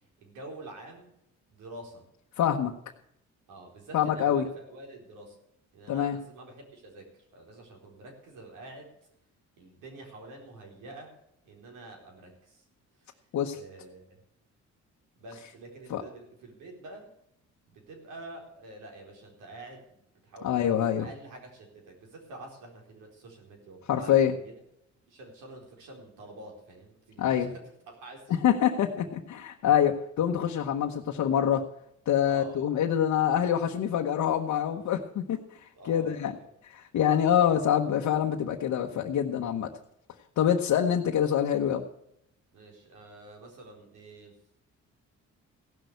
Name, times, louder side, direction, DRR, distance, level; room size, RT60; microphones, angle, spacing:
voice 1, 0.2-1.1 1.5-2.0 3.5-5.4 5.7-8.9 9.6-11.2 11.4-12.6 13.0-13.2 13.5-14.2 15.2-17.1 17.7-20.0 20.2-20.7 21.0-24.5 25.1-28.4 32.2-32.7 35.7-36.5 42.5-44.4, right 2 dB, 85° right, 2 dB, 4.1 m, -47 dB
voice 2, 2.4-2.7 3.9-4.5 5.9-6.2 13.3-13.6 15.9-16.0 20.4-21.1 23.9-24.4 27.2-27.5 28.3-31.7 32.1-36.3 36.6-39.7 40.4-41.8, left 9 dB, 70° left, 1 dB, 1.1 m, -25 dB
16.0 x 6.4 x 8.0 m, 0.77 s
cardioid pair, 90°, 30 cm